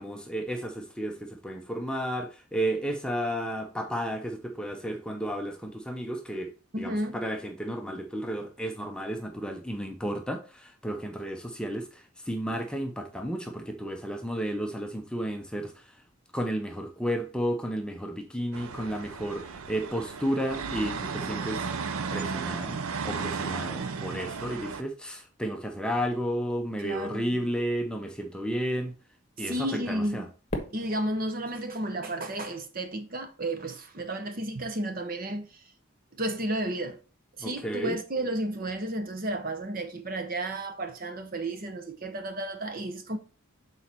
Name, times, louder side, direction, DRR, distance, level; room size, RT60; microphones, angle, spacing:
voice 1, 0.0-6.5 6.8-15.9 16.3-21.7 22.1-22.8 23.0-28.9 29.4-30.3 37.4-38.0, equal, 5° left, 0.6 m, -32 dB
voice 2, 6.7-7.2 26.8-27.4 29.4-30.3 30.7-35.6 36.1-37.0 37.4-43.2, right 1 dB, 40° right, 0.8 m, -32 dB
sound 1, 18.5-24.8, right 5 dB, 85° right, 0.6 m, -34 dB
Fireworks, 30.5-32.8, equal, 30° left, 1.3 m, -40 dB
6.3 x 4.2 x 4.4 m
head